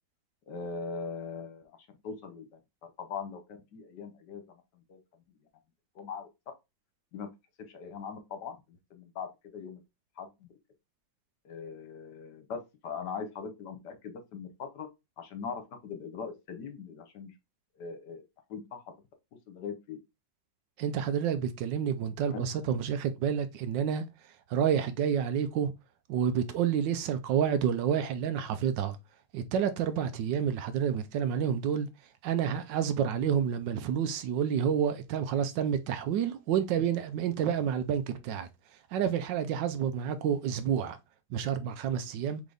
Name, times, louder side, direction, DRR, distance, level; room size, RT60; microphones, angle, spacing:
voice 1, 0.5-1.8 2.0-2.6 3.0-4.4 4.9-5.0 5.9-6.3 7.1-7.3 7.7-9.8 10.2-10.3 11.4-14.9 15.2-17.3 17.8-18.2 18.5-18.8 19.5-20.0 22.3-22.4, left 5 dB, 65° left, 1.4 m, -40 dB
voice 2, 20.8-24.0 24.5-25.7 26.1-29.0 29.3-31.9 32.2-38.5 38.9-41.0 41.3-42.4, right 8 dB, 75° right, 1.3 m, -29 dB
3.9 x 3.7 x 3.3 m
omnidirectional pair, 2.0 m